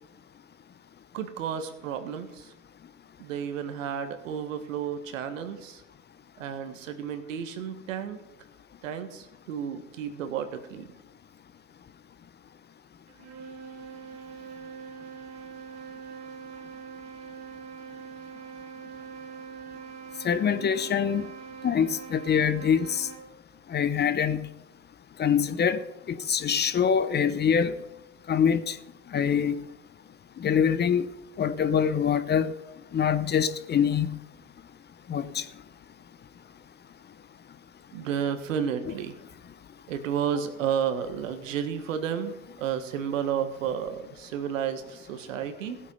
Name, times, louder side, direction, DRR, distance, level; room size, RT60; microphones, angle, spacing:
voice 1, 1.1-2.5 3.2-5.8 6.4-8.2 8.8-10.9 37.9-39.2 39.9-45.8, right 8 dB, 80° right, 1.7 m, -32 dB
sound 1, 13.1-23.4, right 6 dB, 45° right, 2.0 m, -43 dB
voice 2, 20.2-21.2 21.6-23.1 23.7-24.5 25.2-25.8 26.1-27.8 28.3-28.8 29.1-29.6 30.4-31.1 31.4-32.5 32.9-34.2 35.1-35.4, left 7 dB, 25° left, 0.8 m, -24 dB
16.0 x 8.4 x 5.5 m
hypercardioid pair, 95°, 38 cm